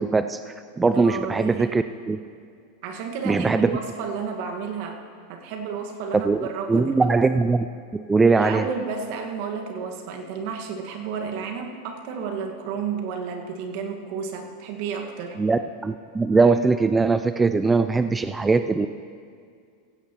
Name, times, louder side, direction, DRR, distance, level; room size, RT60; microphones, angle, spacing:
voice 1, 0.0-2.2 3.2-3.7 6.2-7.7 7.9-8.7 15.4-18.9, right 4 dB, 15° right, 10 dB, 0.4 m, -21 dB
voice 2, 0.9-1.8 2.8-5.0 5.3-7.1 8.3-15.4, right 6 dB, 60° right, 3 dB, 1.7 m, -32 dB
16.0 x 16.0 x 3.0 m, 2.2 s
hypercardioid pair, 95°, 0 cm